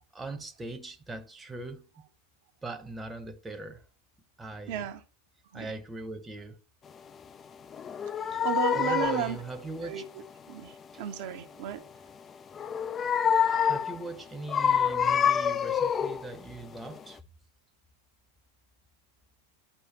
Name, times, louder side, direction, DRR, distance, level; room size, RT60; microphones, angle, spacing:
voice 1, 0.1-1.9 2.6-3.8 4.4-4.9 5.5-6.6 8.2-8.5 8.8-10.0 10.9-11.0 13.3-17.2, right 2 dB, 10° right, 0.8 m, -40 dB
voice 2, 4.7-5.0 5.5-5.7 8.2-9.4 9.8-10.0 10.5-11.8, right 7 dB, 50° right, 0.7 m, -33 dB
sound 1, 7.7-9.4 12.5-14.0 14.5-16.3 16.8-17.0, left 8 dB, 25° left, 0.3 m, -26 dB
10.0 x 4.8 x 2.9 m
figure-of-eight pair, 90°, 0 cm